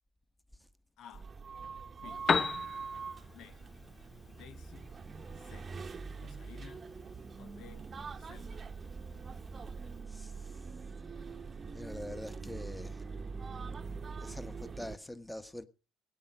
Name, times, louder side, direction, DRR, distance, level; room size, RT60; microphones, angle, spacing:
voice 1, 1.0-1.3 2.0-2.5 3.3-3.6 4.3-4.9 5.3-5.7 6.2-6.9 7.4-7.9 8.2-8.7, left 9 dB, 65° left, 1.0 m, -54 dB
sound 1, 1.1-15.0, right 4 dB, 30° right, 1.1 m, -43 dB
Piano, 2.0-10.0, left 5 dB, 35° left, 0.7 m, -39 dB
voice 2, 10.1-10.5 11.7-13.0 14.2-15.6, left 1 dB, 5° left, 1.3 m, -44 dB
17.5 x 8.7 x 6.4 m
supercardioid pair, 85°, 0 cm